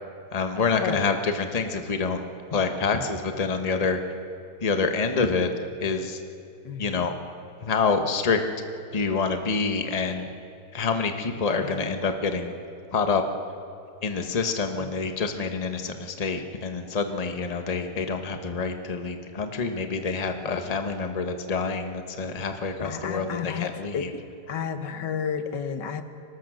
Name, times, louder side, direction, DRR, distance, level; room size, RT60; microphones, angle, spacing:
voice 1, 0.3-2.2 2.5-4.0 4.6-5.5 5.8-6.2 6.8-7.1 7.6-8.4 8.9-10.3 10.7-12.5 12.9-13.2 14.0-24.1, left 4 dB, 25° left, 6 dB, 1.1 m, -27 dB
voice 2, 6.6-7.1 11.6-11.8 14.8-14.9 22.8-24.2 24.5-26.0, left 7 dB, 90° left, 9 dB, 1.7 m, -32 dB
24.5 x 19.5 x 6.4 m, 2.6 s
omnidirectional pair, 1.8 m